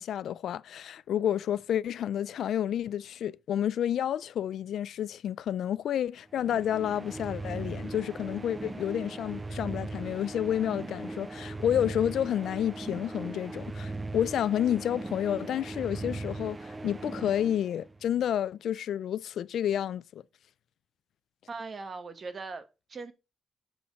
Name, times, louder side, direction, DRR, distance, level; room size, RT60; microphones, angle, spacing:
voice 1, 0.0-20.2, left 10 dB, 80° left, 0.3 m, -30 dB
sound 1, 6.3-18.2, right 2 dB, 20° right, 0.4 m, -39 dB
voice 2, 21.5-23.1, right 4 dB, 35° right, 1.1 m, -40 dB
7.4 x 4.3 x 5.1 m
wide cardioid pair, 145°, 0 cm